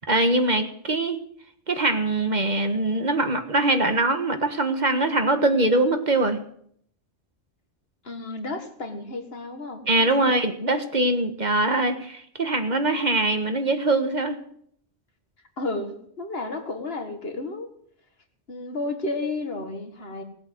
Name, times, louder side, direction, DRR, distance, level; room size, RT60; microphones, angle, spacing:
voice 1, 0.1-1.2 1.7-6.4 9.9-14.4, right 2 dB, 40° right, 7 dB, 1.6 m, -22 dB
voice 2, 8.0-10.5 15.6-17.7 18.5-20.2, left 2 dB, 60° left, 6 dB, 2.1 m, -32 dB
18.5 x 8.2 x 7.9 m, 0.66 s
omnidirectional pair, 1.2 m